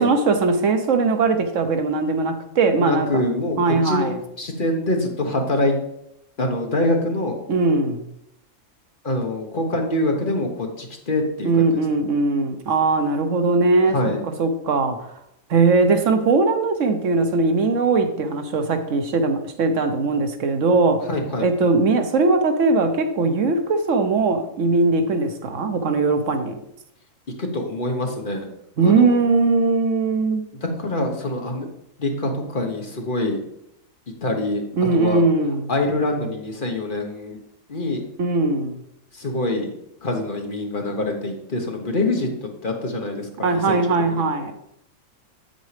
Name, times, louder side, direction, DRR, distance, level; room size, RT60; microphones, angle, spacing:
voice 1, 0.0-3.2 3.6-4.2 7.5-8.0 11.4-15.2 15.5-21.1 21.4-26.6 28.8-30.4 34.8-35.7 38.2-38.8 43.4-44.6, right 3 dB, 70° right, 7 dB, 1.1 m, -20 dB
voice 2, 2.8-5.7 6.4-7.4 9.0-11.8 13.9-14.2 21.1-21.4 27.4-28.5 28.8-29.2 30.6-31.7 32.0-33.4 34.2-35.2 35.7-37.4 37.7-38.0 39.1-39.7 40.0-44.2, left 1 dB, 40° left, 2 dB, 1.2 m, -25 dB
8.3 x 8.1 x 3.3 m, 0.80 s
omnidirectional pair, 1.4 m